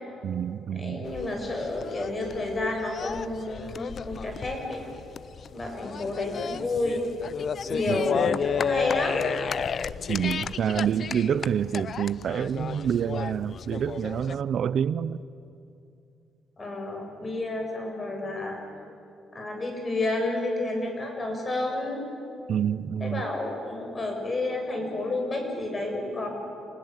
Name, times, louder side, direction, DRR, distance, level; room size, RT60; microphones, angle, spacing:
voice 1, 0.2-1.1 7.9-8.0 10.1-15.2 22.5-23.2, right 8 dB, 60° right, 0.6 m, -27 dB
voice 2, 0.7-4.8 5.5-7.1 7.7-9.4 16.6-18.6 19.3-22.0 23.0-26.3, left 2 dB, 30° left, 7.6 m, -30 dB
sound 1, 1.0-14.4, left 7 dB, 50° left, 0.6 m, -33 dB
28.0 x 20.5 x 9.1 m
cardioid pair, 90°, 0 cm